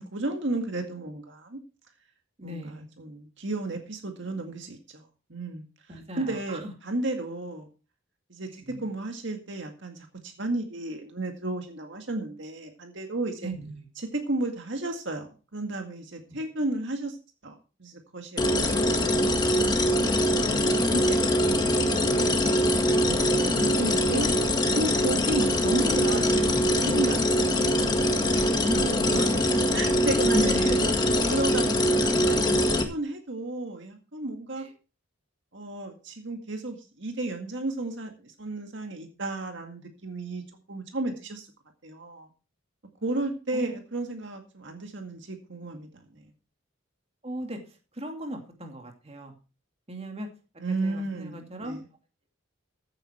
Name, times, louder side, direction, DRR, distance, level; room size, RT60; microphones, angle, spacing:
voice 1, 0.0-1.6 2.4-5.6 5.9-7.7 8.3-13.5 14.0-17.2 17.4-18.9 19.2-20.5 20.8-24.3 24.8-27.8 28.3-29.3 29.7-30.6 31.3-34.6 35.5-40.4 40.7-41.5 41.8-42.3 43.0-46.2 50.6-51.8, right 2 dB, 60° right, 4 dB, 2.0 m, -33 dB
voice 2, 2.4-2.9 5.9-6.7 8.7-8.9 13.4-13.9 16.3-16.4 18.5-18.8 25.1-25.2 28.6-29.3 30.3-31.0 34.6-34.7 43.5-43.7 47.2-47.6 47.9-49.3 49.9-50.3 50.8-51.8, equal, 30° right, 3 dB, 2.5 m, -36 dB
sound 1, 18.4-32.8, left 1 dB, 20° left, 1.8 m, -23 dB
15.0 x 9.1 x 4.5 m, 0.34 s
head